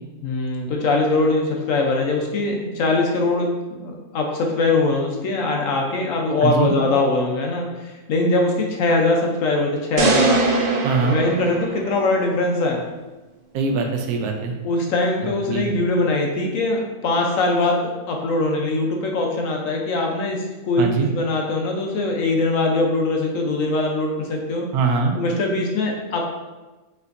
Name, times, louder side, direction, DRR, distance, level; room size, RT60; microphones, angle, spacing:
voice 1, 0.2-10.4 11.0-12.8 14.6-24.7 25.1-26.2, left 2 dB, 65° left, 1 dB, 1.0 m, -22 dB
voice 2, 6.4-6.7 10.8-11.2 13.5-14.5 15.5-15.7 20.8-21.1 24.7-25.2, right 4 dB, 85° right, 3 dB, 1.2 m, -22 dB
sound 1, 10.0-12.3, right 3 dB, 70° right, 0.5 m, -22 dB
5.3 x 3.3 x 2.5 m, 1.2 s
omnidirectional pair, 1.6 m